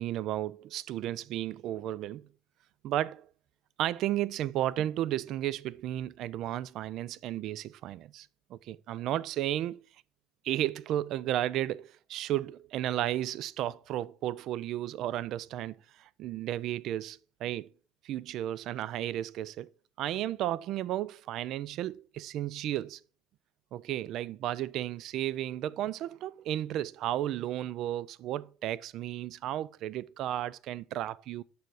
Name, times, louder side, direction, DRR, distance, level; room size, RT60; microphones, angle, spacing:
voice 1, 0.0-2.3 2.8-3.3 3.8-9.8 10.4-17.7 18.0-19.7 20.0-23.0 23.7-31.4, right 13 dB, 55° right, 0.3 m, -33 dB
6.9 x 6.2 x 4.7 m
cardioid pair, 140°, 0 cm